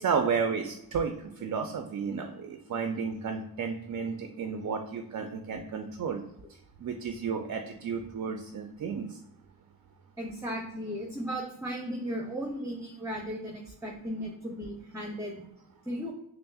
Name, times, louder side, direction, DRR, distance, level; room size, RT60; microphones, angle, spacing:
voice 1, 0.0-6.2 6.8-9.2, right 6 dB, 50° right, 6 dB, 0.4 m, -32 dB
voice 2, 10.2-15.4 15.9-16.1, equal, 10° right, -1 dB, 0.7 m, -36 dB
5.5 x 2.0 x 2.3 m, 0.77 s
cardioid pair, 55°, 40 cm